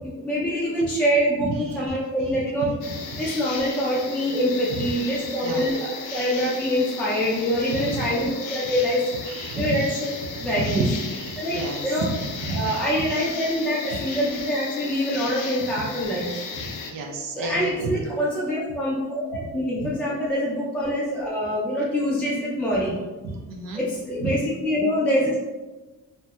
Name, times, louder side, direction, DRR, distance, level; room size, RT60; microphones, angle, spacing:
voice 1, 0.0-2.7 3.2-9.0 9.5-10.1 10.4-10.8 11.4-11.6 11.8-12.0 12.5-16.3 17.3-22.9 23.7-25.4, equal, 5° left, -7 dB, 0.3 m, -25 dB
voice 2, 1.4-1.8 2.3-2.7 3.1-3.3 4.7-5.7 7.7-8.1 9.3-9.9 10.3-13.0 13.9-14.2 16.7-18.2 19.4-19.5 19.8-19.9 23.2-23.8 24.2-24.3, right 3 dB, 85° right, 1 dB, 0.6 m, -31 dB
sound 1, 2.8-16.9, left 5 dB, 80° left, 0.5 m, -35 dB
2.7 x 2.2 x 3.3 m, 1.2 s
wide cardioid pair, 180°, 33 cm